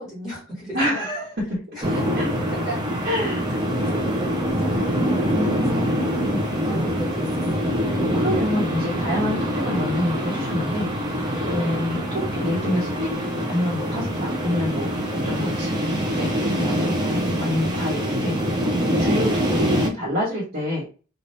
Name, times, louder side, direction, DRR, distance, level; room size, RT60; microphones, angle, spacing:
voice 1, 0.0-1.1 1.7-3.1 3.5-3.7 4.5-5.9 6.2-7.9 11.3-11.6 16.6-16.8, equal, 5° right, -9 dB, 1.5 m, -36 dB
voice 2, 0.7-1.6 1.8-2.3 3.0-3.6 5.3-6.4 8.1-10.9 11.5-13.2 13.5-14.9 15.2-15.8 16.2-16.9 17.4-18.4 19.0-20.8, left 1 dB, 45° right, -7 dB, 1.3 m, -27 dB
sound 1, 1.8-19.9, equal, 20° right, 0.6 m, -24 dB
2.6 x 2.4 x 3.3 m, 0.34 s
head